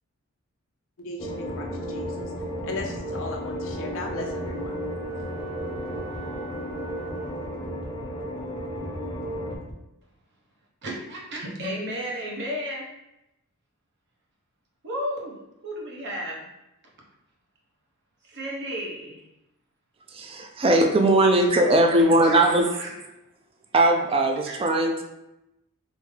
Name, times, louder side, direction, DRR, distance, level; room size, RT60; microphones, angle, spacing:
voice 1, 1.0-2.3 2.6-4.8, left 3 dB, 60° left, 1 dB, 0.5 m, -36 dB
sound 1, 1.2-9.6, equal, 15° left, 0.6 m, -33 dB
sound 2, 1.3-9.8, equal, 5° right, 1.2 m, -46 dB
Wind instrument woodwind instrument, 3.5-7.9, right 3 dB, 85° right, 0.5 m, -43 dB
voice 2, 10.8-12.9 14.8-16.5 18.2-19.2 21.3-21.5 22.2-22.9 24.5-24.6, equal, 50° right, -2 dB, 0.9 m, -33 dB
voice 3, 20.1-22.7 23.7-25.0, right 1 dB, 25° right, 3 dB, 0.3 m, -19 dB
3.5 x 2.7 x 3.2 m, 0.91 s
head